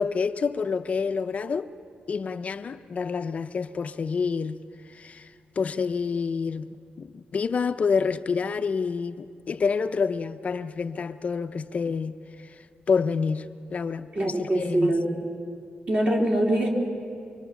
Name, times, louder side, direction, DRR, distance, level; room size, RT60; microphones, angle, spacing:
voice 1, 0.0-1.7 2.1-4.6 4.9-12.6 12.9-14.9, left 5 dB, 45° left, 0.5 m, -28 dB
voice 2, 14.1-15.1 15.9-16.7, right 1 dB, 45° right, 3.5 m, -23 dB
25.0 x 23.0 x 7.1 m
wide cardioid pair, 155°, 3 cm